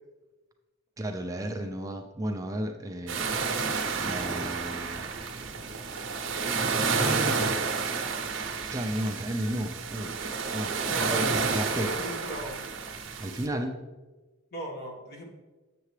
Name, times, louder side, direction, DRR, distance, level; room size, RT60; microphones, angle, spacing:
voice 1, 1.0-5.1 7.0-7.9 8.7-10.2 10.5-10.8 11.5-11.9 13.2-13.8, right 1 dB, 15° right, 4 dB, 0.4 m, -33 dB
sound 1, 3.1-13.5, right 4 dB, 65° right, 0.8 m, -30 dB
voice 2, 10.9-11.3 11.8-12.6 14.5-15.3, equal, 50° left, 0 dB, 1.5 m, -37 dB
7.4 x 6.9 x 3.2 m, 1.2 s
head